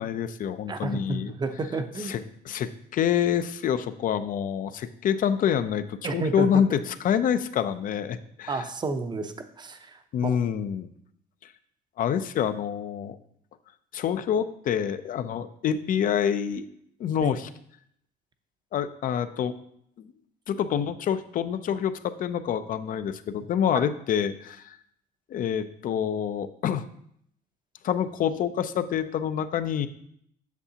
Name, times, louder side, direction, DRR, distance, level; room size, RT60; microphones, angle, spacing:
voice 1, 0.0-1.3 2.0-8.7 10.1-10.9 11.4-11.5 12.0-13.2 13.9-16.7 17.0-17.5 18.7-19.5 20.0-20.1 20.5-24.8 25.3-26.8 27.8-29.9, left 8 dB, 50° left, 12 dB, 0.5 m, -27 dB
voice 2, 0.7-2.1 6.0-6.5 8.5-9.8 10.2-10.4 17.2-17.3 23.7-23.8, right 3 dB, 25° right, 8 dB, 0.7 m, -30 dB
8.2 x 6.9 x 2.8 m, 0.70 s
cardioid pair, 115°, 18 cm